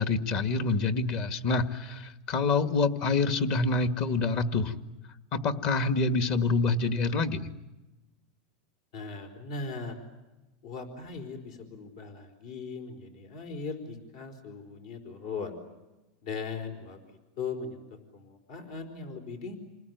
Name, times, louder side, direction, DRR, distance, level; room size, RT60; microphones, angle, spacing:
voice 1, 0.0-4.7 5.3-7.5, left 3 dB, 45° left, 9 dB, 2.0 m, -27 dB
voice 2, 8.9-10.0 10.6-15.6 16.2-19.6, left 4 dB, 70° left, 6 dB, 4.5 m, -39 dB
28.5 x 20.5 x 9.5 m, 1.1 s
supercardioid pair, 135°, 3 cm